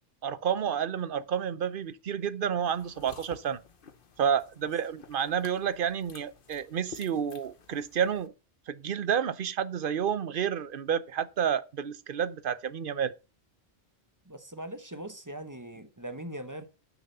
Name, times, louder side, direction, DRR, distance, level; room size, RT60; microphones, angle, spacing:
voice 1, 0.2-3.6 4.2-8.3 8.7-13.1, right 8 dB, 55° right, 0.9 m, -30 dB
sound 1, 2.7-8.3, left 6 dB, 55° left, 1.2 m, -52 dB
voice 2, 14.3-16.7, right 1 dB, 20° right, 1.1 m, -40 dB
10.5 x 6.1 x 5.5 m
omnidirectional pair, 1.1 m